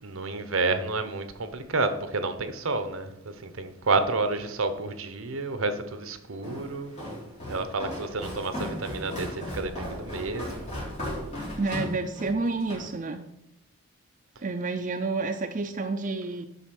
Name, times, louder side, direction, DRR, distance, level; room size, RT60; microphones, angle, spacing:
voice 1, 0.0-7.1 7.5-10.7, right 3 dB, 65° right, 0.9 m, -30 dB
Walk footsteps, 6.4-12.9, left 1 dB, 30° left, 3.4 m, -36 dB
voice 2, 11.6-13.3 14.4-16.5, right 3 dB, 35° right, 0.4 m, -29 dB
8.1 x 5.4 x 5.9 m
head